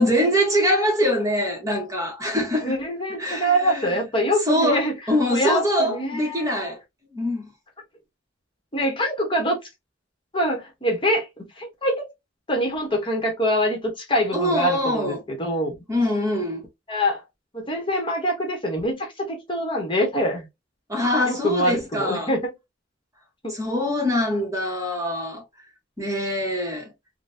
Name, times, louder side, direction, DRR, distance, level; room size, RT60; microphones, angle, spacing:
voice 1, 0.0-2.8 3.2-3.9 4.5-6.8 7.1-7.4 14.3-15.2 15.9-16.6 20.9-22.3 23.5-25.4 26.0-26.9, left 1 dB, 15° right, 1.2 m, -23 dB
voice 2, 2.6-4.9 5.3-6.6 8.7-9.6 10.3-12.1 12.5-15.7 16.9-17.2 17.5-20.5 21.2-22.5 23.4-23.5, equal, 25° left, 1.1 m, -24 dB
3.8 x 2.2 x 2.6 m
head